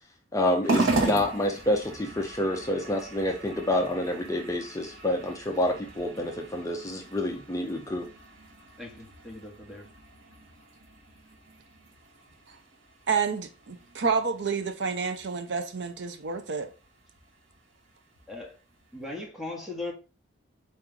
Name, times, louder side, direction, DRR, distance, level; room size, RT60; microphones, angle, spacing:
voice 1, 0.3-8.1, left 1 dB, 15° left, 0.6 m, -28 dB
sound 1, 0.6-19.2, right 2 dB, 80° right, 1.1 m, -37 dB
voice 2, 8.8-9.9 18.3-18.6 18.9-19.9, left 2 dB, ahead, 1.1 m, -38 dB
voice 3, 13.1-16.7, right 5 dB, 60° right, 0.6 m, -29 dB
4.5 x 3.1 x 3.5 m
head